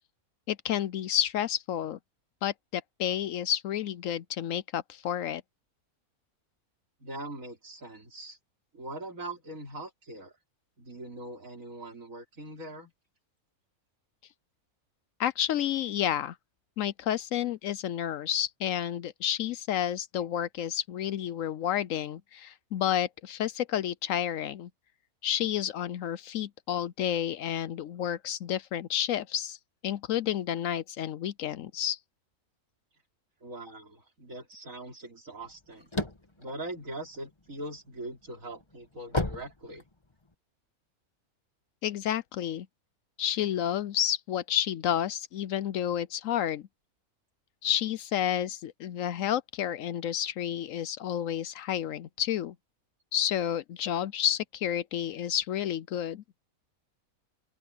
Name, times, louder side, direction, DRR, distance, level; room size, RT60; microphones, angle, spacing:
voice 1, 0.5-2.0 2.4-5.4 15.2-16.4 16.8-24.7 25.2-29.6 29.8-32.0 41.8-42.7 43.2-46.7 47.6-52.5 53.1-56.2, left 10 dB, 70° left, 0.9 m, -30 dB
voice 2, 7.0-8.4 8.7-10.3 10.8-12.9 33.4-35.9 36.4-39.8, right 1 dB, 65° right, 4.4 m, -41 dB
sound 1, 35.4-37.6 38.1-40.3, left 2 dB, 20° left, 1.4 m, -33 dB
open air
omnidirectional pair, 1.5 m